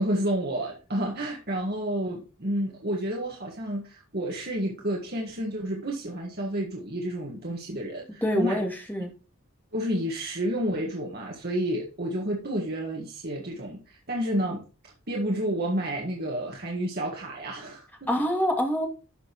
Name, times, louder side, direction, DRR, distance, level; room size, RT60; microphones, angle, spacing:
voice 1, 0.0-8.6 9.7-18.1, right 1 dB, 45° right, 1.7 m, -30 dB
voice 2, 8.2-9.1 18.1-18.9, equal, 10° left, 2.4 m, -26 dB
12.0 x 6.4 x 3.0 m
head